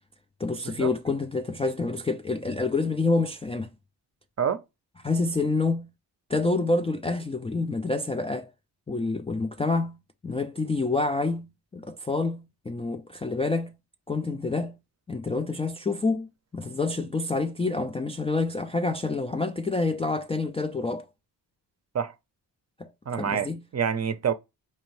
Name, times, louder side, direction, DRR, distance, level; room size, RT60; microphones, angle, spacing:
voice 1, 0.4-3.7 5.0-5.9 6.3-8.5 8.9-10.0 10.2-11.5 11.7-13.7 14.1-14.8 15.1-21.0 22.8-22.9 23.2-23.6, left 3 dB, 15° left, 0.3 m, -27 dB
voice 2, 23.1-24.3, right 7 dB, 40° right, 0.6 m, -27 dB
4.3 x 2.6 x 3.1 m
cardioid pair, 55°, 43 cm